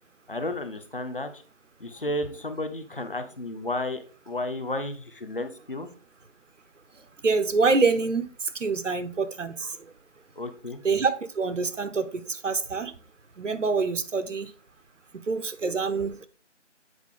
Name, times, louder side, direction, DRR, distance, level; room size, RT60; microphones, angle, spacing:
voice 1, 0.3-1.4 1.8-5.9 10.4-10.8, left 1 dB, 50° left, 0.9 m, -32 dB
voice 2, 7.2-8.3 8.5-9.7 10.8-12.9 13.4-14.5 15.1-16.3, right 4 dB, 90° right, 0.9 m, -26 dB
8.1 x 4.9 x 3.7 m
figure-of-eight pair, 175°, 36 cm